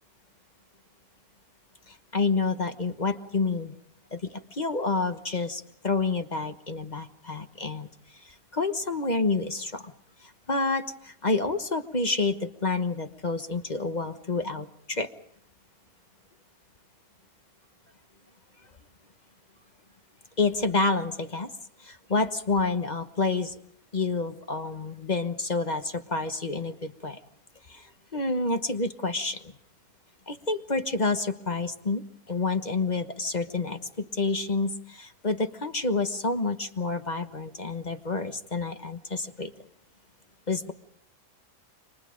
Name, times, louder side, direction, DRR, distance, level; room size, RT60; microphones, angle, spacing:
voice 1, 1.9-3.8 4.1-9.9 10.2-15.1 20.4-21.5 21.8-23.6 23.9-27.2 27.7-29.5 30.3-39.5 40.5-40.7, left 3 dB, 30° left, 8 dB, 1.2 m, -29 dB
29.5 x 25.0 x 5.1 m, 0.65 s
omnidirectional pair, 1.5 m